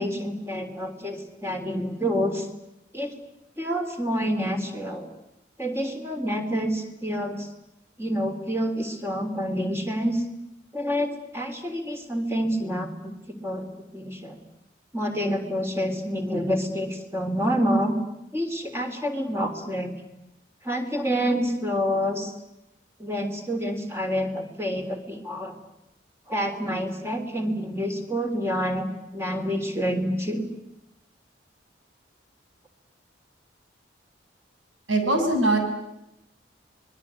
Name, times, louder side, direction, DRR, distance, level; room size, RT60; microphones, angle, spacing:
voice 1, 0.0-2.5 2.9-3.1 3.6-5.1 5.6-7.5 8.0-10.2 10.7-13.7 13.9-14.4 14.9-17.9 18.3-19.9 20.6-22.3 23.0-25.6 26.3-28.9 29.1-30.5, equal, 15° right, 5 dB, 3.4 m, -28 dB
voice 2, 34.9-35.6, right 2 dB, 85° right, 4 dB, 7.2 m, -21 dB
25.5 x 21.5 x 9.6 m, 0.87 s
head